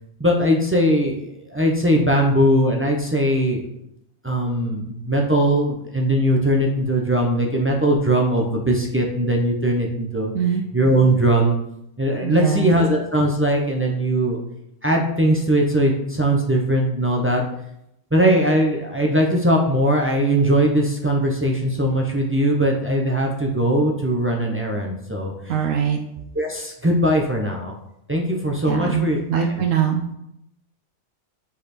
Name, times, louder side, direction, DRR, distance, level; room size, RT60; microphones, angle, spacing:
voice 1, 0.2-3.6 4.2-11.6 12.0-14.4 14.8-17.4 18.1-25.7 26.3-27.7 28.1-29.6, right 1 dB, 20° right, -1 dB, 0.4 m, -20 dB
voice 2, 12.2-12.7 25.5-26.0 28.7-29.0 29.3-30.0, right 8 dB, 75° right, 4 dB, 0.9 m, -21 dB
5.3 x 4.2 x 4.2 m, 0.80 s
omnidirectional pair, 1.4 m